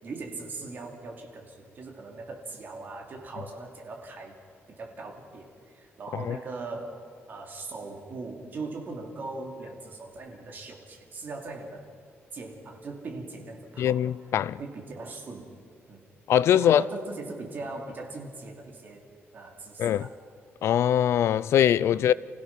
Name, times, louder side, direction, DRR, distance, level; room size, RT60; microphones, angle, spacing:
voice 1, 0.0-4.4 4.7-11.8 12.3-14.0 14.6-15.6 15.9-16.0 16.5-19.0 19.3-20.1, right 3 dB, 40° right, 2.9 m, -40 dB
voice 2, 13.8-14.6 16.3-16.8 19.8-20.1 20.6-22.1, left 10 dB, 70° left, 0.4 m, -22 dB
29.5 x 16.5 x 6.0 m
cardioid pair, 160°, 5 cm